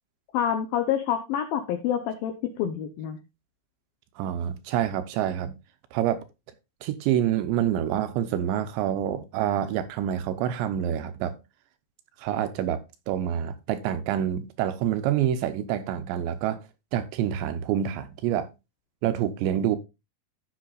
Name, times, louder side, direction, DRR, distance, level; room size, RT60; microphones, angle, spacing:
voice 1, 0.3-2.3 2.6-3.2, left 9 dB, 85° left, 2.0 m, -27 dB
voice 2, 4.2-5.6 5.9-6.2 6.8-11.3 12.2-16.6 16.9-18.5 19.0-19.8, right 10 dB, 80° right, 2.8 m, -27 dB
16.0 x 6.5 x 2.4 m
omnidirectional pair, 5.5 m